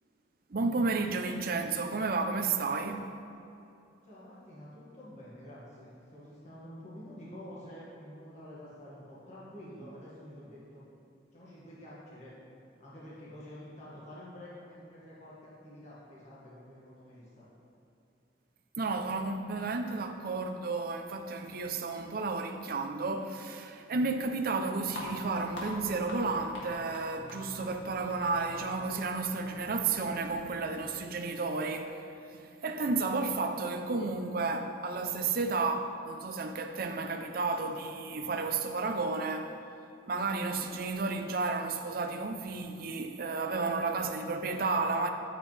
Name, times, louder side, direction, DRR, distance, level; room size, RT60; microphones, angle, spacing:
voice 1, 0.5-3.1 18.8-32.0 32.3-39.6 40.1-45.1, right 3 dB, 50° right, 0.6 m, -32 dB
voice 2, 4.0-10.8 11.3-12.4 12.8-17.5, equal, 40° left, 1.9 m, -48 dB
sound 1, 24.9-31.0, left 1 dB, 80° left, 2.1 m, -45 dB
9.4 x 8.9 x 3.3 m
head